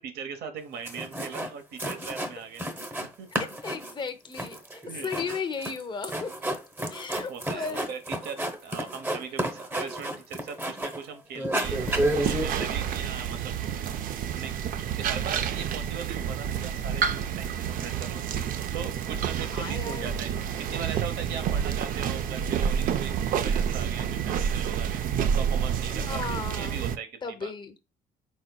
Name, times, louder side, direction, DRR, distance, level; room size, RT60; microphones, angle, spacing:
voice 1, 0.0-2.7 3.2-3.5 4.9-5.2 7.3-11.8 12.2-13.6 14.3-14.5 14.9-20.3 20.6-23.1 23.4-25.0 25.3-27.5, right 6 dB, 70° right, 0.9 m, -39 dB
sound 1, 0.6-0.7 0.9-1.5 1.8-3.1 3.3-11.1 11.4-12.6, right 1 dB, 10° right, 0.8 m, -31 dB
voice 2, 3.4-4.6 5.0-6.5 6.9-7.9 19.5-20.1 25.9-26.8 27.2-27.8, left 5 dB, 25° left, 0.7 m, -35 dB
sound 2, 11.6-27.0, right 8 dB, 55° right, 0.4 m, -29 dB
4.2 x 4.0 x 2.2 m
cardioid pair, 110°, 17 cm